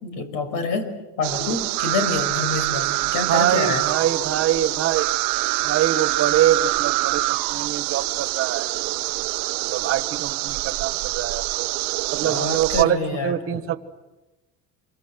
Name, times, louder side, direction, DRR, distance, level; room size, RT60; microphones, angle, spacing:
voice 1, 0.0-0.9 1.2-3.8 12.2-13.6, left 4 dB, 70° left, 9 dB, 5.7 m, -27 dB
sound 1, 1.2-12.8, right 22 dB, 80° right, 0.9 m, -25 dB
voice 2, 3.3-5.1 5.6-8.7 9.7-11.7 12.1-13.8, right 11 dB, 40° right, 11 dB, 1.6 m, -24 dB
27.5 x 25.0 x 8.0 m, 1.1 s
cardioid pair, 160°, 34 cm